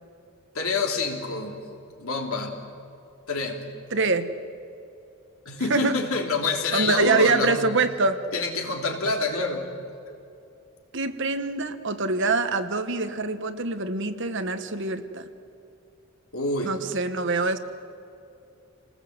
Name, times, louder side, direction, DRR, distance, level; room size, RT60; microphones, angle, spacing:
voice 1, 0.5-1.6 2.0-2.5 3.3-3.6 5.4-7.7 8.3-9.7 10.1-10.2 16.3-16.8, left 3 dB, 75° left, 1 dB, 3.3 m, -27 dB
voice 2, 3.9-4.3 5.7-6.0 6.7-8.2 10.9-15.3 16.6-17.6, right 3 dB, 55° right, 9 dB, 1.3 m, -24 dB
29.0 x 19.5 x 8.0 m, 2.7 s
head